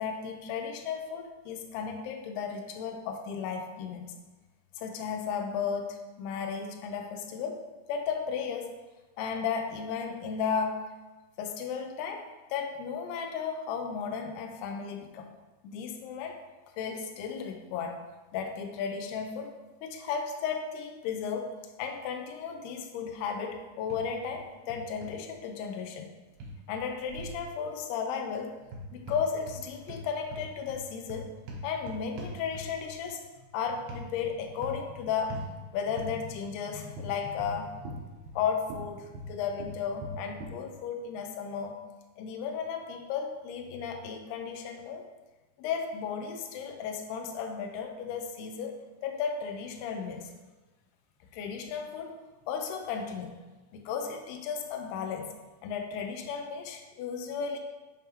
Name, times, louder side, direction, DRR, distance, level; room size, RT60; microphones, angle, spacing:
voice 1, 0.0-4.1 4.8-7.6 7.9-8.8 9.2-10.9 11.4-15.3 15.6-16.4 16.8-18.0 18.3-26.1 26.7-28.6 28.9-31.3 31.6-37.8 38.3-41.8 42.2-45.1 45.6-50.3 51.3-52.2 52.5-53.4 53.7-55.3 55.6-57.6, left 6 dB, 80° left, 4 dB, 2.6 m, -34 dB
sound 1, 23.9-24.4 24.7-25.1 26.4-27.4 28.6-29.6 29.9-32.9 33.9-34.1 34.6-34.9 35.3-35.5 36.0-36.1 36.9-38.4 38.7-40.6, equal, 85° right, 1.6 m, -41 dB
10.0 x 3.5 x 3.0 m, 1.2 s
omnidirectional pair, 4.7 m